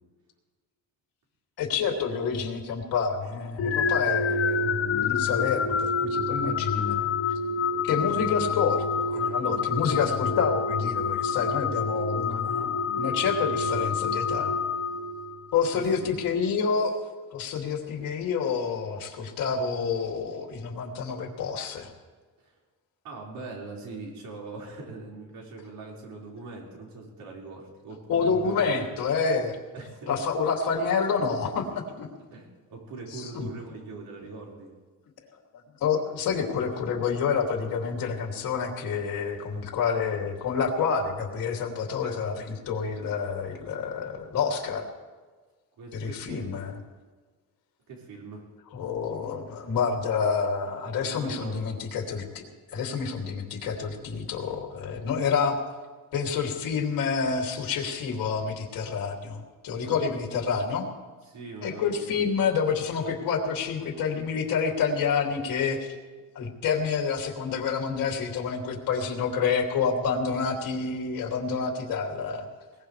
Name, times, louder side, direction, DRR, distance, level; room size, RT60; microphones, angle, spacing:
voice 1, 1.6-7.1 7.8-14.5 15.5-17.0 17.3-21.9 28.1-29.6 30.1-32.1 33.1-33.5 35.8-44.8 45.9-46.7 48.7-52.4 52.7-55.6 56.1-60.9 61.6-66.0 66.3-72.5, left 5 dB, 75° left, 1 dB, 2.9 m, -28 dB
sound 1, 3.6-15.6, left 5 dB, 40° left, 0.6 m, -27 dB
voice 2, 15.7-16.1 22.4-22.5 23.0-28.9 29.7-30.1 32.3-34.7 45.8-46.6 47.9-48.5 51.0-51.8 59.8-60.0 61.3-62.3, right 3 dB, 75° right, -3 dB, 5.3 m, -41 dB
21.5 x 20.0 x 3.4 m, 1.4 s
cardioid pair, 165°, 34 cm